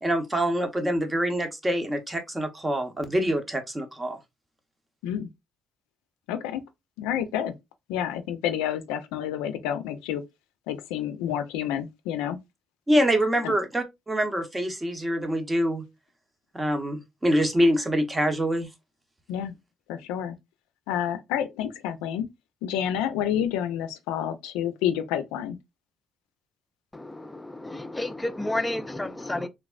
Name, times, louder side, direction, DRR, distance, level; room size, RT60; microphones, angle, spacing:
voice 1, 0.0-4.2 12.9-15.8 16.5-18.7, equal, 20° right, 0.8 m, -25 dB
voice 2, 6.3-6.6 7.0-7.5 7.9-10.2 10.7-12.4 13.4-13.5 19.3-19.6 19.9-20.4 20.9-22.3 22.6-25.6, left 10 dB, 90° left, 0.3 m, -29 dB
voice 3, 26.9-29.5, left 1 dB, 15° left, 0.4 m, -31 dB
3.3 x 2.0 x 2.3 m
supercardioid pair, 65°, 0 cm